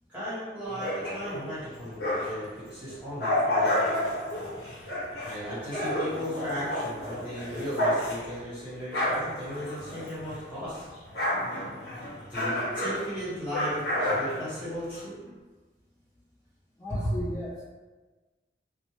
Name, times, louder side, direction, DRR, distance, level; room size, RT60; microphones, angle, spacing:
voice 1, 0.1-4.0 5.2-10.9 12.3-15.2 16.9-17.1, equal, 10° right, -12 dB, 1.4 m, -36 dB
sound 1, 0.7-2.5 2.9-10.5 10.7-15.0, left 1 dB, 65° left, 0.9 m, -30 dB
voice 2, 16.8-17.6, left 1 dB, 20° left, -11 dB, 0.5 m, -35 dB
2.6 x 2.1 x 3.1 m, 1.2 s
head